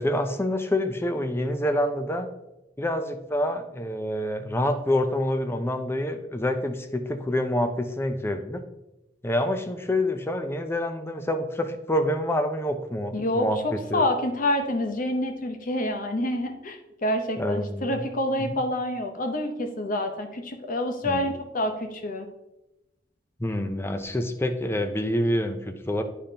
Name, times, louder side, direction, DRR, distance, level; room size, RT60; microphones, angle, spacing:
voice 1, 0.0-2.3 2.8-8.6 9.2-14.0 17.4-18.1 18.4-18.6 21.0-21.2 23.4-26.0, left 1 dB, 15° left, 8 dB, 0.5 m, -27 dB
voice 2, 13.1-22.3, left 1 dB, 50° left, 6 dB, 0.8 m, -27 dB
9.3 x 5.1 x 2.8 m, 0.93 s
head